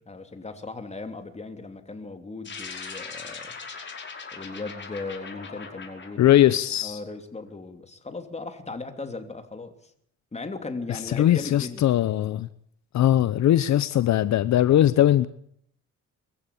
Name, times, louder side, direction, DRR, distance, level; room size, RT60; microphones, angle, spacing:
voice 1, 0.1-3.6 4.3-6.3 6.8-9.9 10.3-11.9, left 3 dB, 20° left, 3.2 m, -37 dB
sound 1, 2.4-7.1, left 5 dB, 40° left, 5.7 m, -40 dB
voice 2, 6.2-7.0 11.1-12.5 12.9-15.3, left 12 dB, 65° left, 0.9 m, -20 dB
23.0 x 15.5 x 8.6 m
cardioid pair, 90°, 30 cm